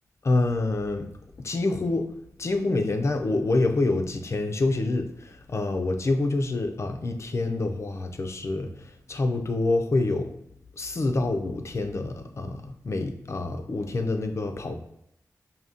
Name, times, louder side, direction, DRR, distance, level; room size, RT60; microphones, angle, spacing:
voice 1, 0.2-1.1 1.4-2.1 2.4-10.3 10.8-14.7, left 2 dB, 50° left, 5 dB, 0.5 m, -27 dB
5.0 x 2.8 x 2.7 m, 0.79 s
wide cardioid pair, 85°, 6 cm